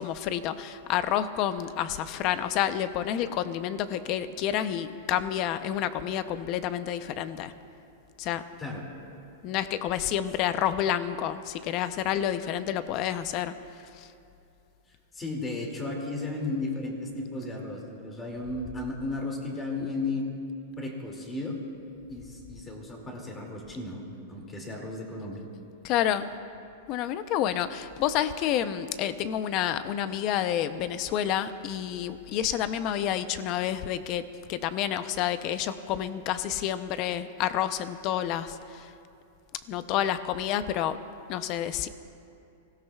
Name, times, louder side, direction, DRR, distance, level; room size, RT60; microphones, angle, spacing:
voice 1, 0.0-7.5 8.2-8.4 9.4-13.5 14.0-14.1 25.8-26.3 26.9-38.9 39.7-41.0 41.3-41.9, left 10 dB, 40° left, 12 dB, 0.6 m, -29 dB
voice 2, 15.1-20.3 20.8-21.6 22.1-25.4, left 2 dB, 15° left, 0 dB, 2.4 m, -34 dB
25.0 x 17.0 x 2.4 m, 2.6 s
supercardioid pair, 155°, 0 cm